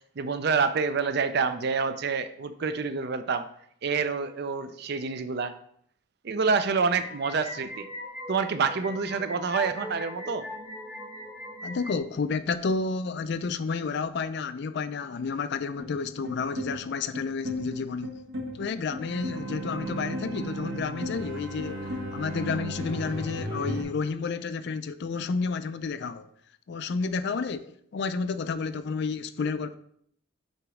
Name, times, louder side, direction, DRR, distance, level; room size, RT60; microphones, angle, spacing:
voice 1, 0.2-3.5 3.8-5.5 6.2-7.9 8.3-10.4, right 5 dB, 50° right, 0.4 m, -27 dB
sound 1, 6.7-12.0, left 1 dB, 10° right, 0.9 m, -40 dB
voice 2, 11.6-18.1 18.5-26.3 26.7-29.8, left 4 dB, 50° left, 0.4 m, -31 dB
sound 2, 15.8-23.8, equal, 80° right, 2.0 m, -35 dB
7.8 x 3.0 x 4.8 m
head